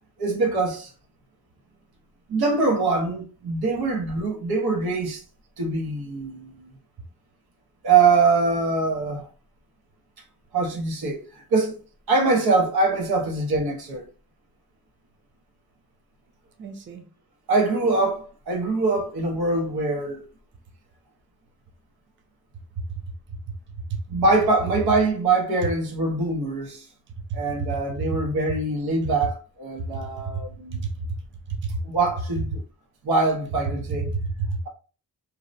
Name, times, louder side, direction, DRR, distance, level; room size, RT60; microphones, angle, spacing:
voice 1, 0.2-0.9 2.3-5.2 5.6-6.7 7.8-9.3 10.5-11.8 12.1-14.0 17.5-20.3 24.1-26.9 27.3-30.9 31.8-32.6 33.0-34.1, right 3 dB, 90° right, 0.8 m, -23 dB
voice 2, 16.6-17.1 22.8-23.0 23.9-24.0 30.3-30.4 30.8-31.2 31.5-31.8 34.1-34.6, right 4 dB, 35° right, 0.4 m, -29 dB
2.8 x 2.0 x 2.4 m
wide cardioid pair, 110°, 36 cm